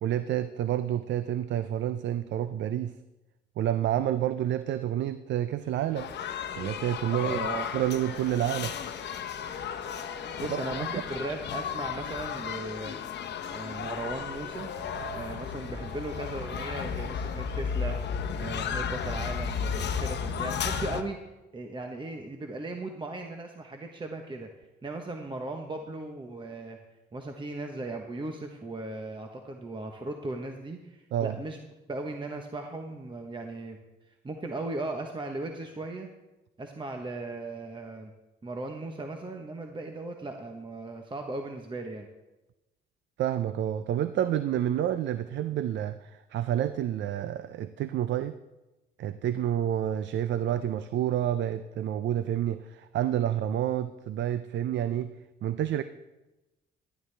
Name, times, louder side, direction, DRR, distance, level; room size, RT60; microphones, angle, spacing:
voice 1, 0.0-2.9 3.6-6.1 6.6-7.4 7.7-8.7 10.5-10.6 10.9-11.0 31.1-31.4 43.2-48.4 49.0-55.1 55.4-55.8, right 11 dB, 65° right, 12 dB, 0.5 m, -29 dB
sound 1, 5.6-20.3, right 3 dB, 80° right, 4.5 m, -52 dB
sound 2, 5.9-21.0, left 7 dB, 60° left, 0.8 m, -34 dB
voice 2, 7.2-7.7 10.4-13.0 13.5-14.7 15.1-18.0 18.3-21.2 21.5-24.5 24.8-26.8 27.1-31.6 31.9-33.8 34.1-36.1 36.6-38.1 38.4-42.1, right 2 dB, 25° right, 4 dB, 1.0 m, -37 dB
12.5 x 11.0 x 3.3 m, 1.0 s
cardioid pair, 90°, 20 cm